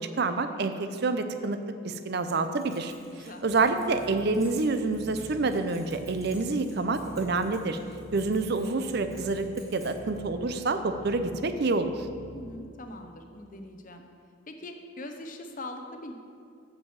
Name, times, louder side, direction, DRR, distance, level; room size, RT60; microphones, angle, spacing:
voice 1, 0.0-7.8 8.1-9.5 9.7-12.1, right 3 dB, 50° right, 9 dB, 0.5 m, -28 dB
Keys jangling, 2.3-10.2, right 2 dB, 15° right, 2.5 m, -55 dB
voice 2, 3.1-3.4 12.3-14.0 14.5-16.2, left 1 dB, 40° left, 5 dB, 0.7 m, -42 dB
sound 1, 3.5-12.7, right 1 dB, 85° right, 0.9 m, -47 dB
7.3 x 6.2 x 7.1 m, 2.3 s
head